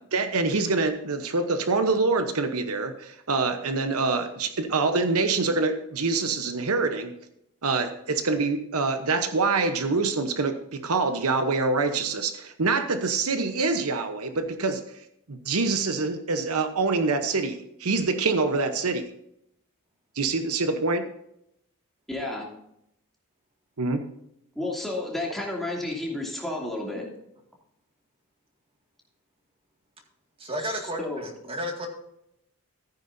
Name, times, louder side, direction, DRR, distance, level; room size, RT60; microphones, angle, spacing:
voice 1, 0.1-7.1 7.6-14.8 15.3-19.1 20.2-21.0 23.8-24.0, right 3 dB, 75° right, 8 dB, 1.0 m, -25 dB
voice 2, 22.1-22.5 24.5-27.1 31.0-31.2, left 2 dB, ahead, -3 dB, 2.8 m, -31 dB
voice 3, 30.4-31.9, equal, 25° right, 2 dB, 2.1 m, -33 dB
14.5 x 9.5 x 2.7 m, 0.77 s
head